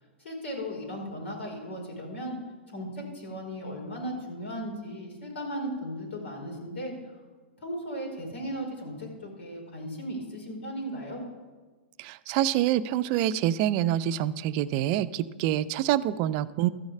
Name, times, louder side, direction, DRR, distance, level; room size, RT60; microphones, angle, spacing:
voice 1, 0.2-2.4 2.7-6.9 7.6-11.2, equal, 80° left, -1 dB, 4.9 m, -36 dB
voice 2, 12.0-16.7, right 12 dB, 45° right, 14 dB, 0.5 m, -26 dB
13.0 x 6.4 x 8.5 m, 1.4 s
hypercardioid pair, 125°, 6 cm